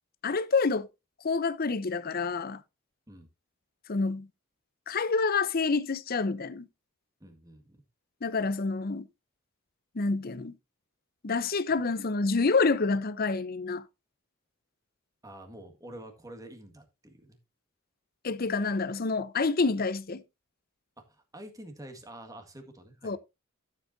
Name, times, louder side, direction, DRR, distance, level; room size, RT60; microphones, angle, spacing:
voice 1, 0.2-0.9 1.2-2.6 3.9-4.3 4.9-6.7 8.2-9.1 9.9-10.5 11.2-13.8 18.2-20.2 23.0-23.2, left 4 dB, 45° left, 0.7 m, -28 dB
voice 2, 7.2-7.8 15.2-17.4 21.0-23.2, right 1 dB, 15° right, 1.8 m, -47 dB
13.0 x 7.6 x 2.7 m
head